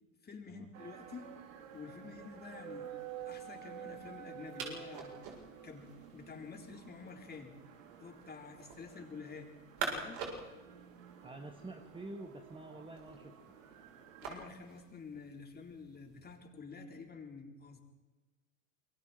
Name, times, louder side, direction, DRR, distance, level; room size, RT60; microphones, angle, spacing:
voice 1, 0.2-1.3 1.7-2.9 3.3-5.1 5.6-7.5 8.0-9.5 9.8-10.2 14.2-17.8, left 5 dB, 25° left, 2 dB, 4.0 m, -49 dB
sound 1, 0.7-14.5, right 9 dB, 80° right, 3.3 m, -51 dB
sound 2, 0.9-16.4, right 5 dB, 60° right, 7.6 m, -48 dB
voice 2, 11.2-13.4, right 2 dB, 15° right, 5 dB, 1.8 m, -48 dB
28.0 x 22.5 x 4.4 m, 1.2 s
hypercardioid pair, 95°, 39 cm